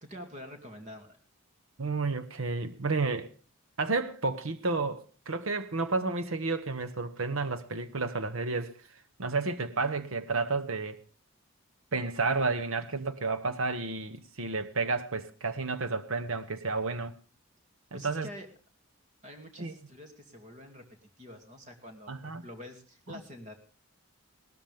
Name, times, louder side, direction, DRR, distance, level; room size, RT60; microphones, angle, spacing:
voice 1, 0.0-1.2 17.9-18.5 19.2-23.5, equal, 35° right, 2.5 m, -47 dB
voice 2, 1.8-3.3 3.8-8.7 9.2-11.0 11.9-17.1 17.9-18.3 19.6-19.7 22.1-22.4 23.1-23.2, right 3 dB, 70° right, 1.0 m, -31 dB
19.0 x 13.5 x 3.5 m
head